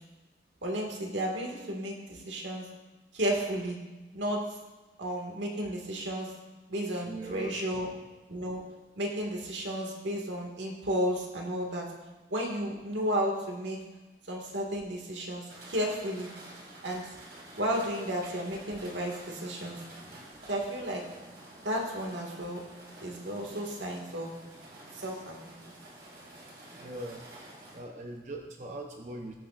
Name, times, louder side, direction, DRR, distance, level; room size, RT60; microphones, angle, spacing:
voice 1, 0.6-2.7 3.1-3.8 4.1-4.4 5.0-6.3 6.7-7.9 8.3-8.6 9.0-11.8 12.3-13.8 14.3-16.3 16.8-17.1 17.5-19.8 20.5-21.0 21.6-22.6 23.0-24.3 24.9-25.7, equal, 85° right, 0 dB, 1.9 m, -33 dB
voice 2, 7.0-7.7 26.7-27.3 27.7-29.3, right 2 dB, 40° right, 1 dB, 0.7 m, -41 dB
sound 1, 15.5-27.8, right 1 dB, 60° right, 2.8 m, -50 dB
20.0 x 6.7 x 2.5 m, 1.2 s
head